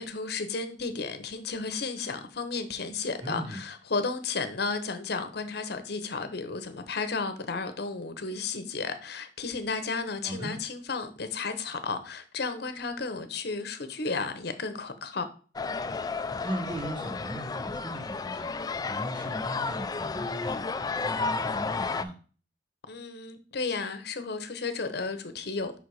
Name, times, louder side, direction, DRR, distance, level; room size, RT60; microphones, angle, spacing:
voice 1, 0.0-15.2 22.9-25.8, left 4 dB, 65° left, 0.8 m, -33 dB
voice 2, 3.2-3.6 10.2-10.5 16.4-18.5 18.9-22.1, right 1 dB, 30° right, 1.5 m, -38 dB
sound 1, 15.6-22.0, left 4 dB, 20° left, 0.3 m, -32 dB
5.7 x 4.1 x 4.7 m
head